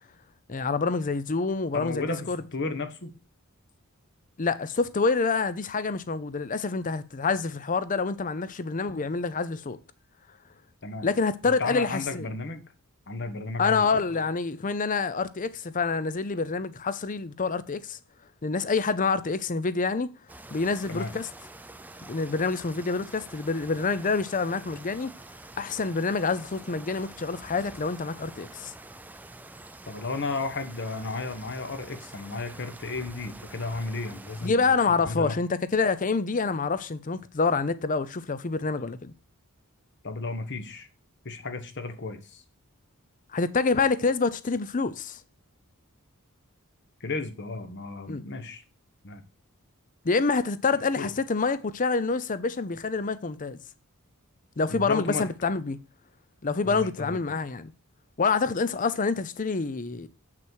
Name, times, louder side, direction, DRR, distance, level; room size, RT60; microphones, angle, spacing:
voice 1, 0.5-2.4 4.4-9.8 11.0-12.3 13.6-18.0 18.4-20.1 20.5-21.3 22.1-25.1 25.6-28.7 34.4-39.1 43.3-45.2 48.1-48.3 50.0-53.6 54.6-55.8 56.4-57.7 58.2-60.1, left 4 dB, 35° left, 0.6 m, -27 dB
voice 2, 1.7-3.1 10.8-11.1 11.4-12.6 13.1-13.9 20.9-21.2 29.9-34.7 35.0-35.4 40.0-40.9 41.2-42.4 47.0-48.6 49.0-49.2 51.0-51.1 54.7-55.3 56.6-57.2, left 3 dB, 50° left, 1.2 m, -33 dB
sound 1, 20.3-34.5, right 2 dB, 10° right, 0.4 m, -46 dB
7.7 x 6.1 x 4.5 m
head